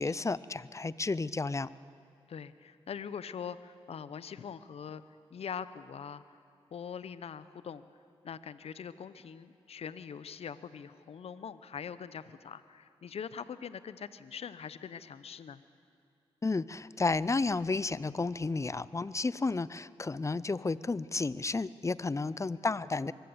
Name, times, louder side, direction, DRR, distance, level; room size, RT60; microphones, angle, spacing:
voice 1, 0.0-1.7 16.4-23.1, left 3 dB, 30° left, 19 dB, 0.5 m, -32 dB
voice 2, 2.3-5.0 5.3-6.4 6.7-7.8 8.2-15.6 22.5-22.7, left 7 dB, 70° left, 15 dB, 0.8 m, -43 dB
23.5 x 15.0 x 8.0 m, 2.4 s
cardioid pair, 55°, 11 cm